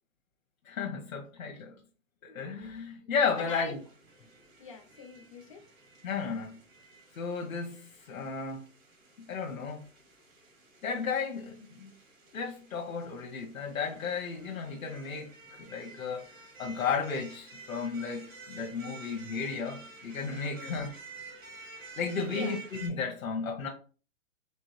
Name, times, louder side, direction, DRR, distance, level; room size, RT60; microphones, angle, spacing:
voice 1, 0.6-1.7 2.2-3.8 6.0-6.6 7.2-8.7 9.3-9.8 10.8-11.9 12.3-16.2 16.6-20.9 22.0-23.7, left 5 dB, 80° left, 1.1 m, -34 dB
sound 1, 3.3-22.9, right 4 dB, 75° right, 2.2 m, -51 dB
voice 2, 3.4-3.8 4.6-5.6 20.5-20.9 22.2-22.6, left 6 dB, 25° left, 0.4 m, -44 dB
4.5 x 2.4 x 3.1 m
hypercardioid pair, 155°, 40 cm